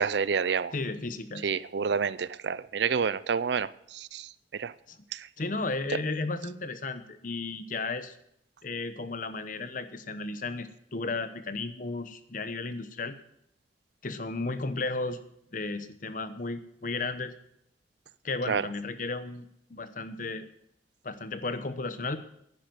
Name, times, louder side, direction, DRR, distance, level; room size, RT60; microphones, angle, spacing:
voice 1, 0.0-0.7 1.4-3.7 4.1-4.2 4.6-4.7 18.5-18.6, right 6 dB, 75° right, 0.5 m, -28 dB
voice 2, 0.7-1.5 4.9-5.0 5.4-8.2 8.6-13.1 14.0-15.2 15.5-17.3 18.2-20.4 21.0-22.2, left 3 dB, 50° left, 1.0 m, -34 dB
10.5 x 10.0 x 7.8 m
head